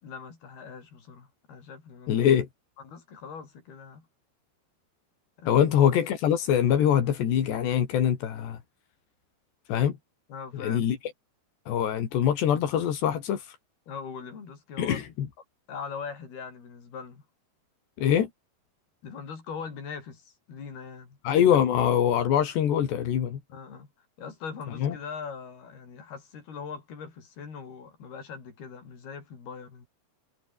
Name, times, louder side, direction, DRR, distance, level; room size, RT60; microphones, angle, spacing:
voice 1, 0.0-2.3 2.8-4.1 5.4-5.6 10.3-10.9 13.9-15.0 15.7-17.2 19.0-21.2 23.5-23.9 24.2-29.9, left 6 dB, 65° left, 7.3 m, -41 dB
voice 2, 2.1-2.5 5.5-8.6 9.7-10.0 10.5-11.0 11.7-13.6 14.8-15.3 18.0-18.3 21.2-23.4 24.8-24.9, left 9 dB, 85° left, 4.9 m, -23 dB
omnidirectional pair, 4.8 m